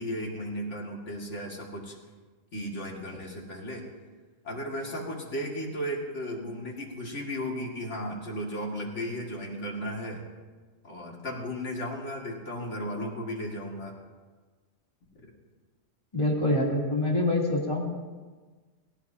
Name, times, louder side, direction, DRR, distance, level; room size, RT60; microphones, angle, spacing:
voice 1, 0.0-2.0 2.5-3.9 4.4-10.2 10.8-14.0, equal, 70° left, -1 dB, 2.5 m, -35 dB
voice 2, 16.1-17.9, left 1 dB, 25° left, -4 dB, 3.1 m, -25 dB
18.0 x 17.5 x 2.8 m, 1.4 s
omnidirectional pair, 1.3 m